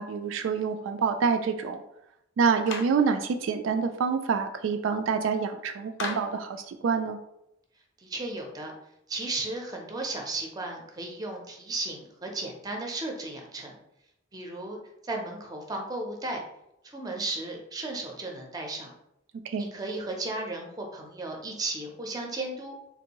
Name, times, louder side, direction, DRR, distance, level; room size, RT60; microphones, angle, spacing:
voice 1, 0.0-1.8 2.4-7.2 19.5-19.7, right 5 dB, 75° right, 6 dB, 0.3 m, -27 dB
Clapping, 2.7-3.0 6.0-6.4, left 3 dB, 60° left, 0.5 m, -35 dB
voice 2, 8.0-8.7 9.1-13.7 14.3-16.4 16.8-18.9 19.6-22.7, right 2 dB, 20° right, 1 dB, 0.5 m, -35 dB
3.6 x 2.6 x 2.9 m, 0.80 s
head